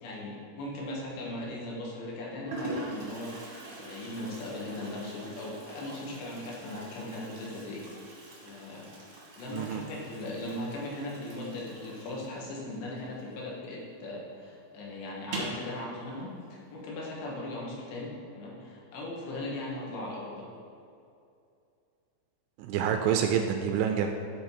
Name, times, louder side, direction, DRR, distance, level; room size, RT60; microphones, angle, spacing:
voice 1, 0.0-3.3 3.8-7.9 8.4-8.9 9.4-20.5, left 1 dB, 80° left, -4 dB, 3.5 m, -38 dB
Toilet flush, 1.0-1.4 2.1-2.2 2.5-13.8 14.0-14.1 14.4-14.5 15.2-15.7, right 1 dB, 60° right, 1.5 m, -43 dB
voice 2, 22.6-24.1, right 8 dB, 85° right, 5 dB, 2.5 m, -27 dB
11.0 x 3.9 x 4.4 m, 2.5 s
omnidirectional pair, 5.1 m